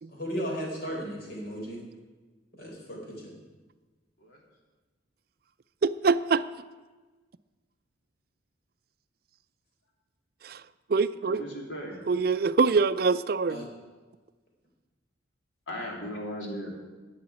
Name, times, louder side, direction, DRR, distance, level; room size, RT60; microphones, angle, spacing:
voice 1, 0.1-1.8 2.6-3.3 13.5-13.7, equal, 55° left, -1 dB, 4.3 m, -35 dB
voice 2, 5.8-6.4 10.4-10.6 10.9-11.4 12.1-13.7, right 4 dB, 50° right, 14 dB, 0.4 m, -24 dB
voice 3, 11.3-12.0 15.7-16.7, equal, 80° left, -1 dB, 3.5 m, -37 dB
11.0 x 8.5 x 9.5 m, 1.3 s
head